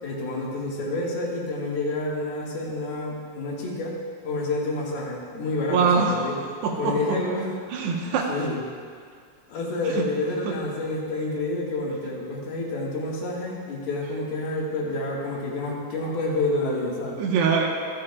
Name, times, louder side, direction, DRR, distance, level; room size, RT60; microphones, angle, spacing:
voice 1, 0.0-4.0 4.2-6.4 6.8-7.5 8.3-8.6 9.5-17.2, left 2 dB, 70° left, -4 dB, 3.7 m, -28 dB
voice 2, 5.7-6.2 6.6-7.2 7.7-8.3 10.0-10.1 17.2-17.7, right 5 dB, 85° right, 0 dB, 3.4 m, -23 dB
24.0 x 10.0 x 2.4 m, 2.1 s
omnidirectional pair, 4.6 m